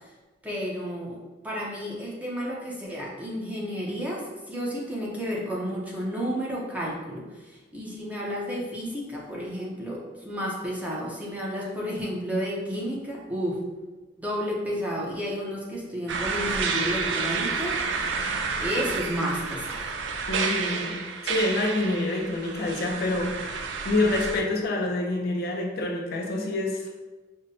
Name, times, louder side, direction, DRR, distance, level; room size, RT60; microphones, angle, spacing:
voice 1, 0.4-1.2 1.4-13.6 14.2-18.1 18.6-19.9, equal, 10° right, -5 dB, 0.6 m, -31 dB
sound 1, 16.1-24.4, right 5 dB, 75° right, 0.4 m, -30 dB
voice 2, 20.3-26.8, left 2 dB, 55° left, 0 dB, 0.5 m, -27 dB
5.2 x 2.1 x 2.7 m, 1.2 s
head